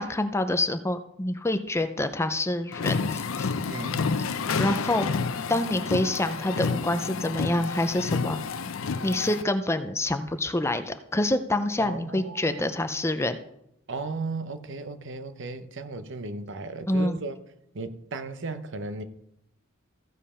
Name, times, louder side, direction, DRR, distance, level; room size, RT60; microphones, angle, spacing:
voice 1, 0.0-3.5 4.6-5.1 5.5-8.4 9.0-13.4 16.9-17.2, left 1 dB, 15° left, 9 dB, 0.5 m, -27 dB
sound 1, 2.7-9.4, left 5 dB, 75° left, 0.6 m, -29 dB
voice 2, 3.6-4.1 11.8-12.6 13.9-17.4 17.7-19.0, right 3 dB, 60° right, 10 dB, 0.9 m, -35 dB
15.0 x 5.3 x 5.6 m, 0.76 s
head